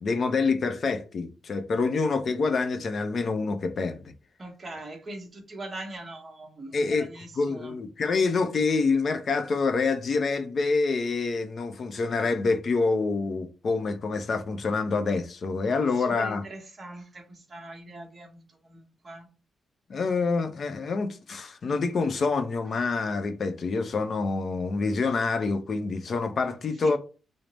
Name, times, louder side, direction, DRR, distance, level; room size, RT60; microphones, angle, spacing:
voice 1, 0.0-4.0 6.7-7.1 7.4-16.4 19.9-27.0, left 4 dB, 45° left, 0.5 m, -26 dB
voice 2, 4.4-7.8 15.8-19.3 26.8-26.9, right 2 dB, 30° right, 0.9 m, -41 dB
3.3 x 2.0 x 3.9 m
cardioid pair, 135°, 0 cm